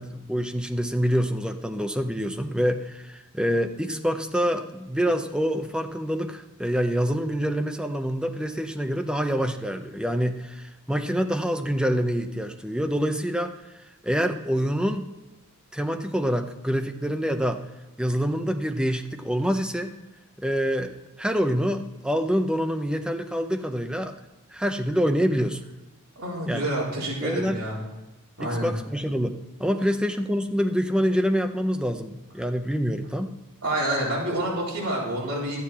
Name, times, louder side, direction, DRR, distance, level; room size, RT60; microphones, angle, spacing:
voice 1, 0.0-13.5 14.0-15.1 15.7-17.6 18.0-20.0 20.4-20.9 21.2-24.1 24.5-25.6 26.5-26.7 27.2-27.6 28.4-33.3, equal, 5° right, 6 dB, 0.7 m, -26 dB
voice 2, 26.2-27.8 28.4-28.7 33.6-35.6, right 1 dB, 70° right, -4 dB, 4.0 m, -28 dB
13.0 x 9.5 x 4.3 m, 1.1 s
head